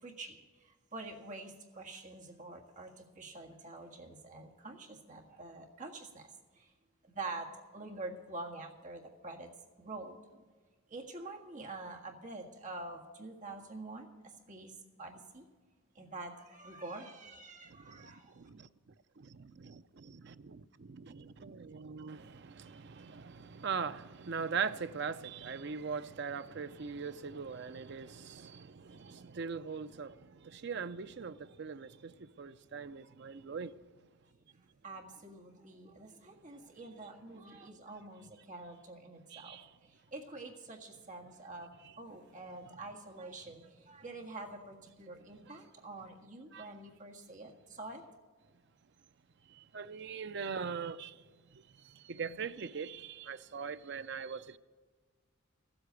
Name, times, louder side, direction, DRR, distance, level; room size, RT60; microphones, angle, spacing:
voice 1, 0.0-6.7 7.0-9.5 9.8-10.4 10.9-15.4 15.9-18.4 34.8-39.6 39.9-48.0, right 2 dB, 35° right, 1.7 m, -47 dB
voice 2, 17.7-18.7 19.2-33.7 39.3-39.7 45.4-45.5 46.5-46.7 49.5-51.2 51.5-54.6, right 5 dB, 55° right, 0.5 m, -41 dB
14.5 x 8.0 x 8.2 m
head